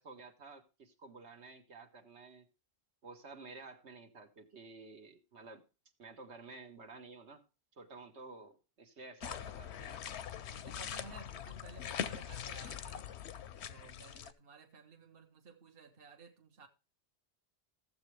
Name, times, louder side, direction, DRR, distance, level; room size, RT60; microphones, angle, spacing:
voice 1, 0.0-2.5 3.0-5.6 6.0-7.4 7.7-10.0, right 3 dB, 80° right, 1.6 m, -52 dB
sound 1, 9.2-14.3, left 9 dB, 80° left, 0.9 m, -42 dB
voice 2, 10.4-13.1 13.7-16.7, right 4 dB, 60° right, 1.2 m, -55 dB
15.0 x 7.4 x 3.2 m
omnidirectional pair, 1.1 m